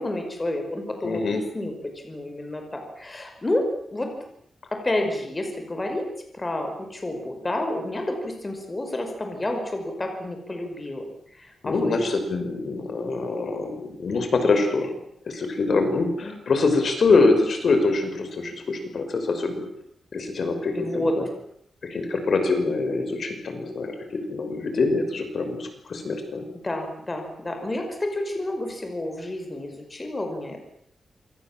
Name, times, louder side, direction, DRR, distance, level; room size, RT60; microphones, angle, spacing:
voice 1, 0.0-1.7 2.0-4.1 4.7-6.1 6.3-11.0 11.3-12.0 16.2-16.3 20.8-21.2 26.6-30.6, left 1 dB, 20° left, 4 dB, 5.4 m, -30 dB
voice 2, 1.0-1.4 11.6-14.9 15.3-19.7 20.1-21.2 21.8-26.4, left 3 dB, 55° left, 7 dB, 5.7 m, -24 dB
28.0 x 25.5 x 7.5 m, 0.71 s
wide cardioid pair, 155°, 0 cm